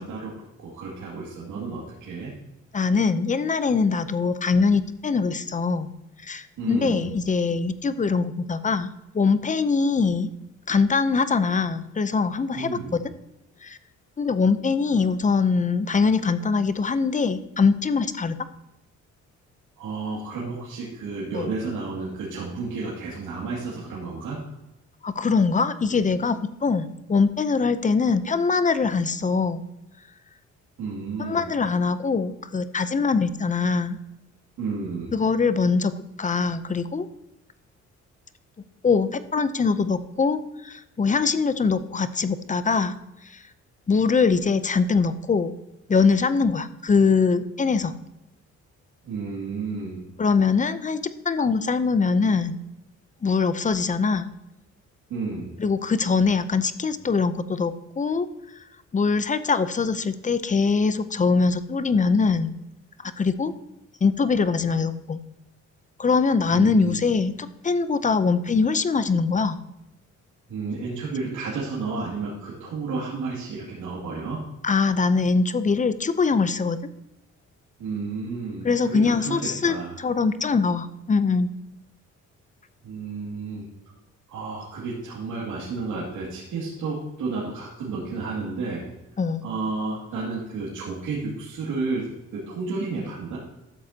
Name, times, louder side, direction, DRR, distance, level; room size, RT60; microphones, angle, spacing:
voice 1, 0.0-2.3 6.6-7.1 12.5-13.0 19.8-24.4 30.8-31.4 34.6-35.1 49.0-50.0 55.1-55.5 66.5-67.0 70.5-74.4 77.8-80.0 82.8-83.7 84.3-88.8 89.4-93.4, right 4 dB, 80° right, -6 dB, 2.5 m, -32 dB
voice 2, 2.7-5.9 6.2-10.3 10.7-13.0 13.6-13.8 14.2-18.4 21.3-21.5 25.0-29.6 31.2-34.0 35.1-35.9 36.2-37.1 38.8-43.0 43.2-43.4 43.9-45.5 45.9-47.9 50.2-52.6 53.2-54.3 55.6-58.3 58.9-62.5 63.0-63.5 64.0-65.2 66.0-69.6 74.6-76.8 78.6-81.5 89.2-89.4, left 4 dB, 25° left, 13 dB, 0.6 m, -23 dB
13.0 x 7.7 x 2.9 m, 0.92 s
cardioid pair, 90°, 30 cm